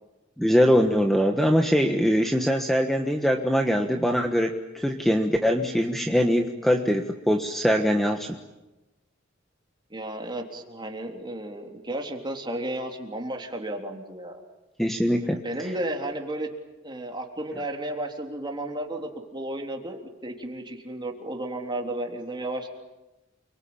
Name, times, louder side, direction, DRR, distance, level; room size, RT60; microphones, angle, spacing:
voice 1, 0.4-8.4 14.8-15.4, equal, ahead, 3 dB, 1.4 m, -22 dB
voice 2, 9.9-14.3 15.4-16.5 16.8-22.7, right 1 dB, 25° right, 2 dB, 3.6 m, -33 dB
29.5 x 23.0 x 8.8 m, 1.0 s
head